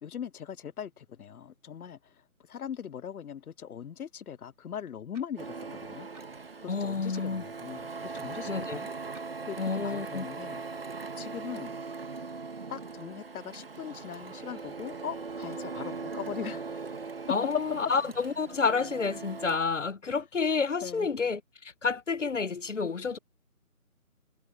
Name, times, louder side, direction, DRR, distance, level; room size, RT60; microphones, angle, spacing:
voice 1, 0.0-2.1 2.5-6.1 6.6-8.9 9.5-10.6 11.2-11.7 12.7-16.8 20.8-21.1, left 8 dB, 80° left, 0.5 m, -40 dB
sound 1, 5.1-5.4 6.1-6.3 7.1-7.4 8.1-8.3 9.1-9.3, right 3 dB, 75° right, 5.1 m, -57 dB
Printer, 5.4-19.6, right 4 dB, 40° right, 1.3 m, -40 dB
voice 2, 6.7-7.4 8.5-8.8 9.6-10.2 17.3-23.2, left 5 dB, 55° left, 0.8 m, -29 dB
figure-of-eight pair, 160°, 44 cm